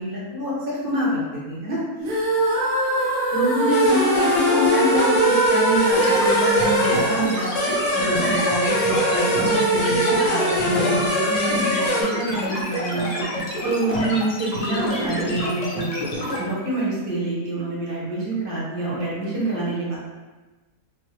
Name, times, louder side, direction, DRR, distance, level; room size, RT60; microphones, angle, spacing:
voice 1, 0.0-1.8 2.1-2.2 3.3-16.0 16.4-20.0, right 1 dB, 45° right, -7 dB, 0.9 m, -26 dB
sound 1, 2.0-8.2, right 1 dB, 85° right, 1.2 m, -23 dB
sound 2, 3.7-12.0, equal, 65° left, 1.0 m, -22 dB
sound 3, 5.9-16.4, equal, 40° left, 0.5 m, -28 dB
3.1 x 2.1 x 3.1 m, 1.2 s
omnidirectional pair, 1.5 m